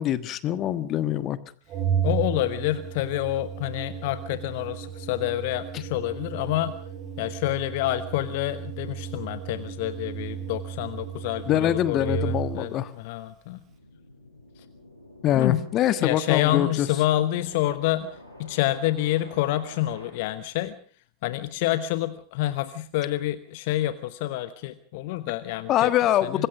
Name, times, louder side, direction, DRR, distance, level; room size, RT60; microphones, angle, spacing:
voice 1, 0.0-1.4 11.5-12.9 15.2-16.9 25.7-26.5, left 12 dB, 35° left, 14 dB, 1.4 m, -24 dB
Organ, 1.7-12.7, right 9 dB, 30° right, 5.2 m, -33 dB
voice 2, 2.0-6.7 7.2-13.6 14.6-14.7 15.3-15.6 16.0-18.1 18.4-20.7 21.2-25.9 26.2-26.5, left 14 dB, 50° left, 13 dB, 1.1 m, -28 dB
sound 1, 13.7-20.1, left 1 dB, 80° left, 5.5 m, -48 dB
25.5 x 21.0 x 5.3 m, 0.43 s
figure-of-eight pair, 90°, 0 cm